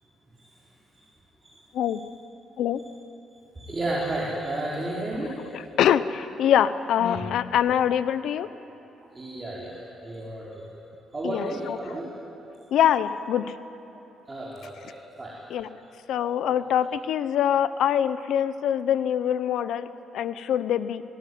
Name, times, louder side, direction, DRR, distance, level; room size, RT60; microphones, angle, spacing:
voice 1, 3.5-5.3 9.1-10.6 11.1-12.1 14.3-15.3, right 1 dB, 20° right, -6 dB, 4.5 m, -32 dB
voice 2, 5.5-8.5 11.2-11.8 12.7-13.6 15.5-15.7 16.1-21.0, left 9 dB, 75° left, 13 dB, 1.0 m, -24 dB
29.0 x 18.5 x 9.6 m, 3.0 s
cardioid pair, 130°, 0 cm